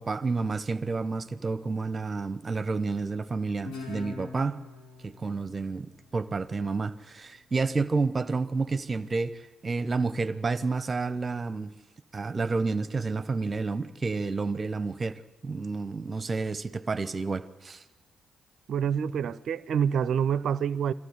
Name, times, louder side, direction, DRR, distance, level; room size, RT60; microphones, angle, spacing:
voice 1, 0.0-4.6 5.0-11.7 12.1-17.8, right 4 dB, 35° right, 1.0 m, -30 dB
Guitar, 3.6-6.9, left 4 dB, 70° left, 6.6 m, -44 dB
voice 2, 18.7-20.9, right 8 dB, 60° right, 0.6 m, -27 dB
22.5 x 14.5 x 9.8 m
hypercardioid pair, 45°, 0 cm